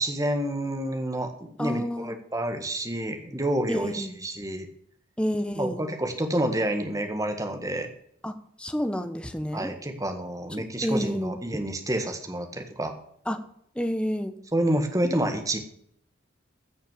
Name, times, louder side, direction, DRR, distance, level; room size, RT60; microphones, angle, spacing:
voice 1, 0.0-4.7 5.6-7.9 9.5-12.9 14.5-15.6, right 1 dB, 15° right, 6 dB, 1.6 m, -28 dB
voice 2, 1.6-2.2 3.7-4.1 5.2-5.8 8.2-9.7 10.6-11.6 13.3-13.4 13.7-14.3, equal, 5° left, 8 dB, 1.0 m, -30 dB
15.0 x 6.6 x 7.5 m, 0.69 s
head